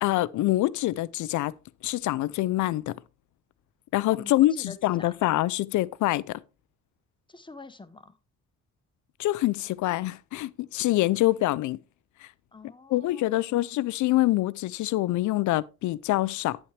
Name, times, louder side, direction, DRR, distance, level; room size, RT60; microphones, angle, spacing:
voice 1, 0.0-1.5 1.8-3.0 3.9-6.4 9.2-11.8 12.2-12.3 12.9-16.6, left 16 dB, 75° left, 0.5 m, -25 dB
voice 2, 4.1-5.1 7.3-8.1 12.5-13.6, left 3 dB, 15° left, 0.8 m, -46 dB
9.0 x 8.6 x 3.2 m
cardioid pair, 90°, 30 cm